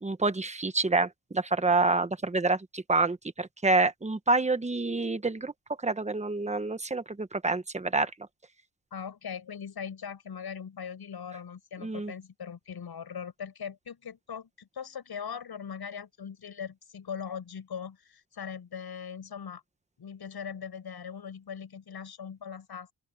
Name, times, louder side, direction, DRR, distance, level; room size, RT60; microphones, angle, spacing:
voice 1, 0.0-5.5 5.8-8.1 11.8-12.1, right 3 dB, 15° right, 1.3 m, -27 dB
voice 2, 8.9-19.6 20.0-22.9, left 7 dB, 60° left, 7.6 m, -40 dB
open air
wide cardioid pair, 120°, 43 cm